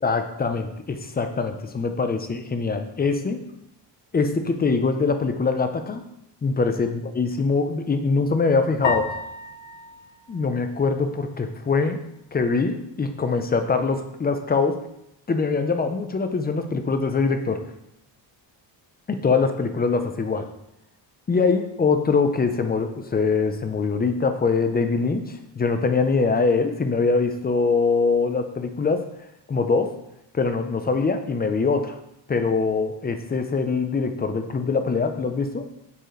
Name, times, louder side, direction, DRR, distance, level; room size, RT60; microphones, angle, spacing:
voice 1, 0.0-3.4 4.1-6.1 6.4-9.1 10.3-12.0 12.3-14.8 15.3-17.6 19.1-20.5 21.3-29.0 29.5-30.0 30.3-32.0 32.3-35.7, left 4 dB, 20° left, 7 dB, 0.4 m, -23 dB
sound 1, 8.8-11.3, left 4 dB, 85° left, 1.0 m, -32 dB
6.8 x 4.9 x 3.8 m, 0.80 s
wide cardioid pair, 165°, 45 cm